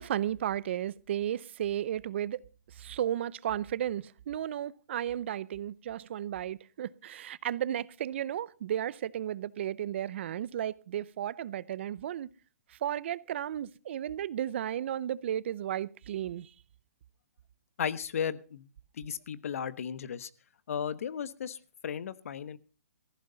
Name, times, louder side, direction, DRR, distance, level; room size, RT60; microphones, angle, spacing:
voice 1, 0.0-2.4 2.8-12.3 12.8-16.5, right 11 dB, 50° right, 0.6 m, -34 dB
voice 2, 17.8-18.6 19.0-20.3 20.7-21.6 21.8-22.6, left 7 dB, 60° left, 1.1 m, -35 dB
16.0 x 15.0 x 4.0 m
hypercardioid pair, 155°, 8 cm